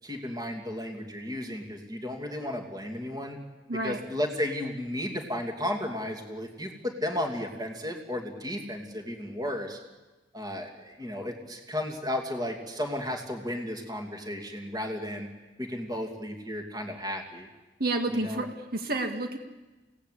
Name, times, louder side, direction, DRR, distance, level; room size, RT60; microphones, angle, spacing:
voice 1, 0.0-3.4 3.8-9.8 10.3-15.3 15.6-17.5 18.1-18.4, left 1 dB, 20° right, 2 dB, 2.8 m, -34 dB
voice 2, 3.7-4.0 17.8-18.5 18.7-19.4, right 2 dB, 55° right, 4 dB, 2.0 m, -29 dB
28.0 x 18.0 x 8.4 m, 1.1 s
head